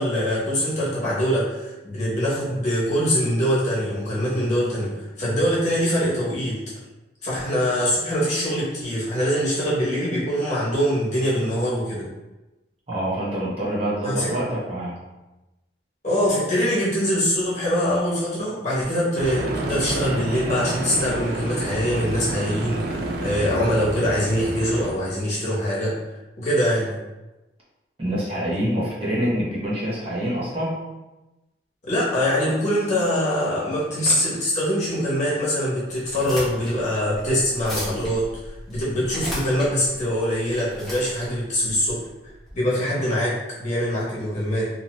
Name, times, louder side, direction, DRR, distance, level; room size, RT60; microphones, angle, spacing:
voice 1, 0.0-4.9 5.2-6.6 7.2-12.0 14.0-14.3 16.0-25.9 26.4-26.9 31.8-42.0 42.5-44.7, equal, 40° left, -8 dB, 1.0 m, -23 dB
voice 2, 12.9-15.0 28.0-30.9, equal, 35° right, -7 dB, 0.8 m, -26 dB
sound 1, 19.2-24.9, right 2 dB, 60° right, 0.4 m, -29 dB
sound 2, 36.0-42.5, equal, ahead, 1.0 m, -36 dB
2.7 x 2.2 x 3.0 m, 1.0 s
head